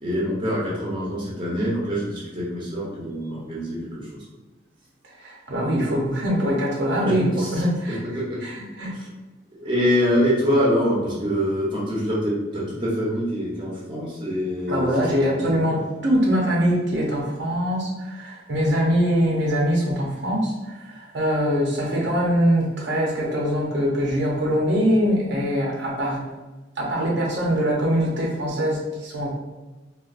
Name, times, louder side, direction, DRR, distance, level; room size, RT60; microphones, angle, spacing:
voice 1, 0.0-4.2 7.0-7.6 8.1-8.4 8.9-9.1 9.6-14.9 15.3-15.6, equal, 25° right, -6 dB, 0.8 m, -25 dB
voice 2, 5.2-8.0 8.4-8.9 14.7-26.2 26.8-29.4, equal, 65° right, -3 dB, 0.7 m, -23 dB
3.7 x 2.5 x 2.5 m, 1.2 s
head